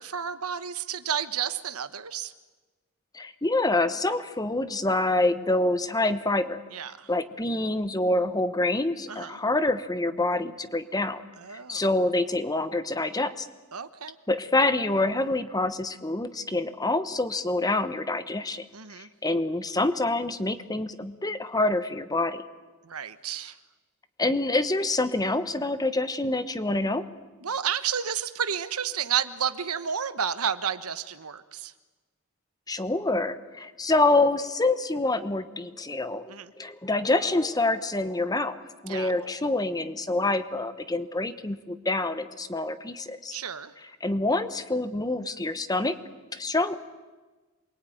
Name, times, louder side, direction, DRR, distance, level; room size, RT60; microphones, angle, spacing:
voice 1, 0.0-2.3 6.7-7.1 9.1-9.4 11.4-11.9 13.7-14.2 18.7-19.1 22.8-23.6 27.4-31.7 36.3-36.5 38.9-39.1 43.3-43.7, right 8 dB, 80° right, 12 dB, 1.3 m, -31 dB
voice 2, 3.1-6.6 7.1-11.2 11.7-13.5 14.3-18.7 19.0-22.4 24.2-27.0 32.7-43.4 44.0-46.0 46.3-46.8, left 2 dB, 15° left, 12 dB, 1.1 m, -26 dB
28.0 x 22.5 x 9.3 m, 1.3 s
head